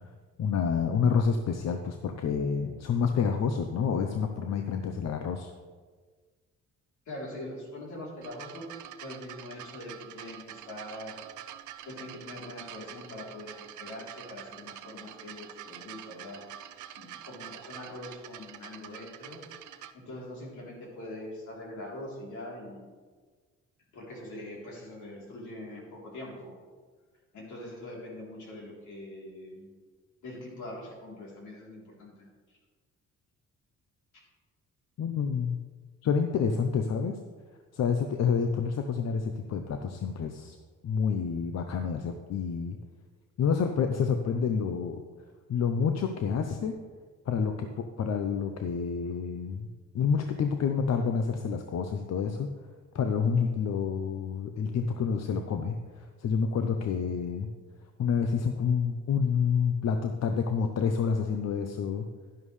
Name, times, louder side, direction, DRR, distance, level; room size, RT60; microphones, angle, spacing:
voice 1, 0.4-5.5 35.0-35.6 36.0-37.2 37.7-40.6 40.8-42.8 43.4-45.0 45.5-46.7 47.3-49.7 49.9-52.5 52.9-57.5 58.0-62.1, left 6 dB, 60° left, 6 dB, 0.8 m, -28 dB
voice 2, 7.1-8.7 9.0-11.3 11.8-16.7 16.9-22.9 23.9-26.5 27.3-29.7 30.2-32.3 34.1-34.2, left 1 dB, 75° left, -3 dB, 3.5 m, -43 dB
sound 1, 8.2-19.9 20.8-20.9, right 11 dB, 80° right, 0.6 m, -46 dB
11.5 x 10.5 x 3.3 m, 1.5 s
cardioid pair, 90°, 30 cm